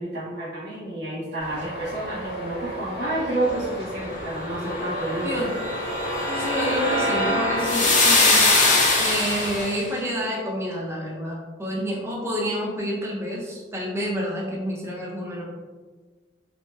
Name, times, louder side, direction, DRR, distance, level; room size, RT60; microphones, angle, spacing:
voice 1, 0.0-5.4, right 1 dB, 65° right, -8 dB, 1.1 m, -30 dB
Traffic noise roadway noise, 1.4-9.6, left 1 dB, 70° left, 0.9 m, -33 dB
sound 1, 5.1-9.8, left 2 dB, 45° left, 0.6 m, -21 dB
voice 2, 6.3-8.5 9.0-15.4, equal, 15° right, -3 dB, 0.5 m, -29 dB
3.0 x 2.8 x 2.2 m, 1.4 s
head